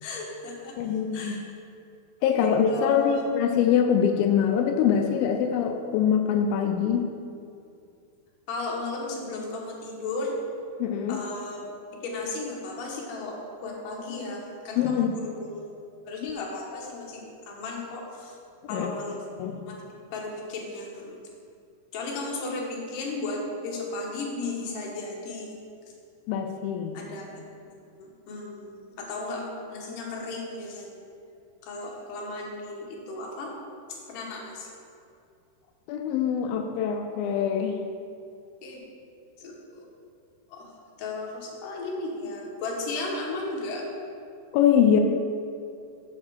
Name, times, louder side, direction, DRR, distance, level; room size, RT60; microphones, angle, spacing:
voice 1, 0.0-1.4 2.3-3.2 8.5-10.4 11.1-11.7 12.0-15.8 16.1-18.4 18.7-19.4 19.7-19.8 20.1-21.2 21.9-25.5 26.9-27.3 27.6-31.0 31.6-33.5 33.9-34.7 38.6-38.8 39.4-39.9 40.5-40.7 41.0-43.8, left 3 dB, 65° left, -1 dB, 2.4 m, -35 dB
voice 2, 0.8-1.4 2.2-7.1 10.8-11.2 14.8-15.1 16.2-16.3 18.7-18.9 19.4-19.6 26.3-27.0 35.9-37.7 44.5-45.0, left 8 dB, 90° left, 4 dB, 2.0 m, -24 dB
7.3 x 4.8 x 6.3 m, 2.5 s
omnidirectional pair, 4.8 m